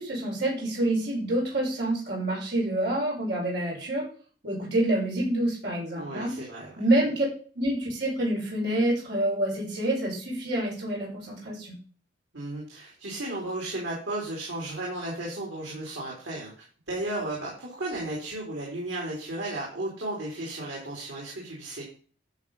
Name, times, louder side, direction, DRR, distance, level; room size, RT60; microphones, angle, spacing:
voice 1, 0.0-4.1 4.4-6.3 6.8-7.3 7.5-11.7, right 1 dB, 60° right, -3 dB, 6.0 m, -27 dB
voice 2, 5.9-6.7 12.3-21.8, right 1 dB, 85° right, -3 dB, 4.1 m, -34 dB
11.5 x 6.3 x 5.8 m, 0.43 s
head